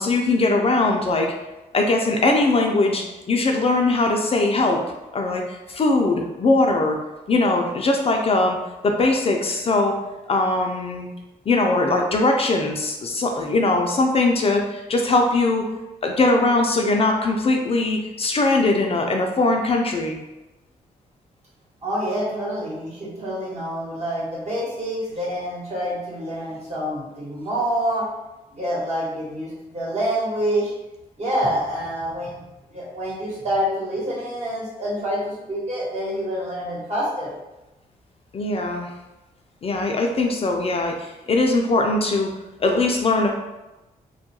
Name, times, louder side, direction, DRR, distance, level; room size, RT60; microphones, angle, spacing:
voice 1, 0.0-1.3 1.7-4.8 5.1-7.0 7.3-8.6 8.8-10.0 10.3-11.1 11.5-15.6 16.0-20.2 38.3-38.9 39.6-42.3 42.6-43.3, left 2 dB, 40° left, 2 dB, 0.4 m, -20 dB
voice 2, 21.8-28.0 28.5-30.7 31.2-32.4 32.7-37.3, equal, 45° right, -5 dB, 1.1 m, -27 dB
2.2 x 2.2 x 2.8 m, 1.0 s
cardioid pair, 65°, 15 cm